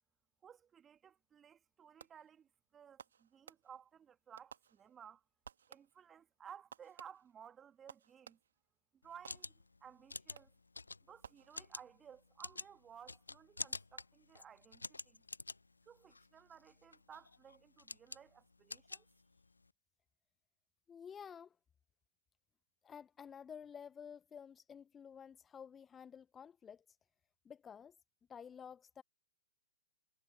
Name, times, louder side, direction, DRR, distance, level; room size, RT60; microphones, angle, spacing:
voice 1, 0.4-5.2 5.7-8.4 8.9-9.5 9.8-10.5 11.1-15.2 15.9-19.1, right 8 dB, 15° right, 2.2 m, -57 dB
Fireworks, 2.0-2.4 3.0-4.0 4.4-5.1 5.4-6.2 6.7-8.7 9.3-9.9 10.4-10.8 11.2-12.0, right 7 dB, 60° right, 1.6 m, -59 dB
sound 1, 9.0-19.7, left 3 dB, 80° left, 0.7 m, -49 dB
voice 2, 20.9-21.6 22.8-27.0 27.4-27.9 28.3-29.0, left 7 dB, 15° left, 0.6 m, -52 dB
figure-of-eight pair, 120°, 0 cm